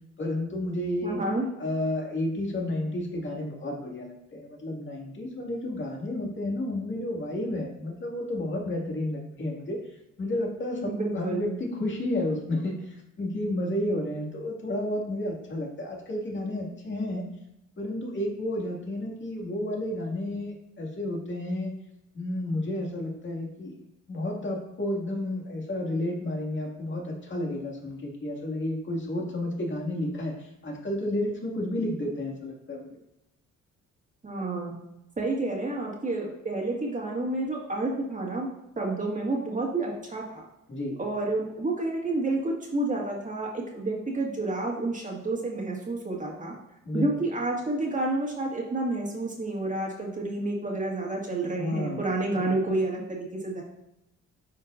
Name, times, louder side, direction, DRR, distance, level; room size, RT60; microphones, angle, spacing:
voice 1, 0.2-1.2 1.6-17.3 17.8-21.8 22.1-23.7 24.1-33.0 40.7-41.0 46.9-47.3 51.6-52.1, left 1 dB, 40° left, -1 dB, 2.1 m, -31 dB
voice 2, 1.0-1.4 10.9-11.5 34.2-34.7 35.2-38.5 38.8-40.5 41.0-46.5 46.9-53.6, right 2 dB, 25° right, -3 dB, 1.9 m, -29 dB
10.0 x 4.6 x 2.6 m, 0.87 s
cardioid pair, 90°, 30 cm